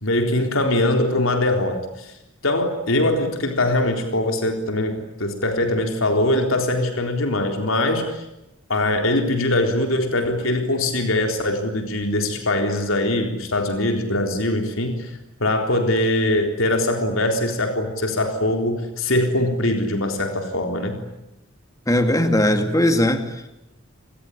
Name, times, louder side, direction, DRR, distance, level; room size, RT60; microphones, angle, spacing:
voice 1, 0.0-2.1 2.4-8.2 8.7-15.1 15.4-21.0, left 1 dB, 75° left, 4 dB, 3.9 m, -22 dB
voice 2, 21.9-23.6, left 1 dB, 15° left, 7 dB, 2.3 m, -19 dB
28.0 x 20.5 x 10.0 m, 0.92 s
head